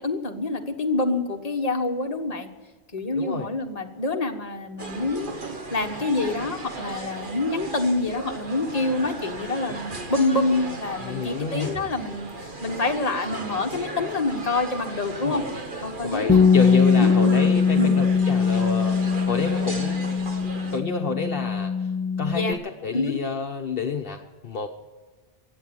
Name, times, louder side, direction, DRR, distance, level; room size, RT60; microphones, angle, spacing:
voice 1, 0.0-2.5 2.9-5.4 5.7-15.4 15.8-18.0 22.3-22.6 22.9-23.1, left 2 dB, 35° left, 3 dB, 1.4 m, -27 dB
voice 2, 3.1-3.5 11.0-11.7 15.2-15.5 16.0-19.0 19.2-20.0 20.7-21.7 22.2-24.7, left 4 dB, 60° left, 4 dB, 1.1 m, -29 dB
sound 1, 4.8-20.8, right 3 dB, 50° right, 1.7 m, -36 dB
Bass guitar, 16.3-22.5, left 5 dB, 10° left, 0.5 m, -21 dB
16.0 x 8.9 x 9.2 m, 1.3 s
omnidirectional pair, 1.1 m